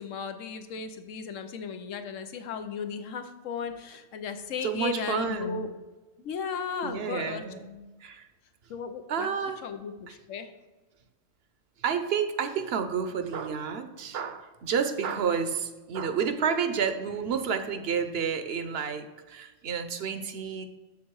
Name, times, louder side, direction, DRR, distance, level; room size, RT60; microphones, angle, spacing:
voice 1, 0.0-5.7 6.2-7.4 8.7-9.3 9.6-10.5, left 6 dB, 80° left, 8 dB, 1.1 m, -36 dB
voice 2, 4.6-5.7 6.8-8.3 9.1-9.6 11.8-20.7, right 6 dB, 60° right, 9 dB, 0.9 m, -30 dB
7.3 x 7.2 x 4.7 m, 1.2 s
omnidirectional pair, 1.3 m